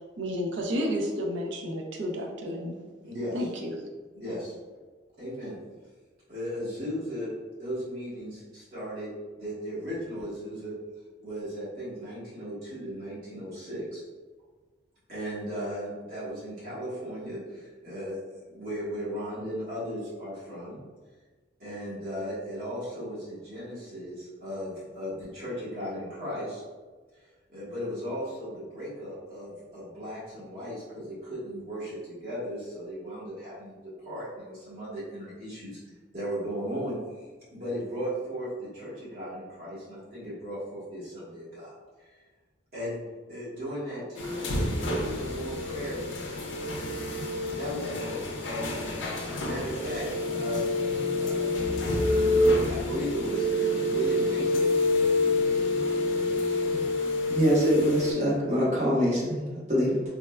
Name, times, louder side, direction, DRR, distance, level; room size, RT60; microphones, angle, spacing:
voice 1, 0.2-2.8 3.3-3.7, equal, 80° right, 1 dB, 0.4 m, -31 dB
voice 2, 3.0-3.4 4.1-4.5 5.2-5.6 6.3-9.1 9.4-10.7 11.2-14.0 15.1-20.8 21.6-26.6 27.5-33.8 34.0-35.8 36.1-37.2 37.5-41.7 42.7-43.0 43.3-46.0 47.5-48.5 49.4-51.7 52.6-54.8, equal, 55° right, -10 dB, 1.2 m, -36 dB
sound 1, 44.2-58.1, left 2 dB, 85° left, 0.4 m, -27 dB
voice 3, 57.3-60.0, right 1 dB, 35° right, -6 dB, 0.8 m, -24 dB
3.4 x 2.1 x 2.2 m, 1.3 s
head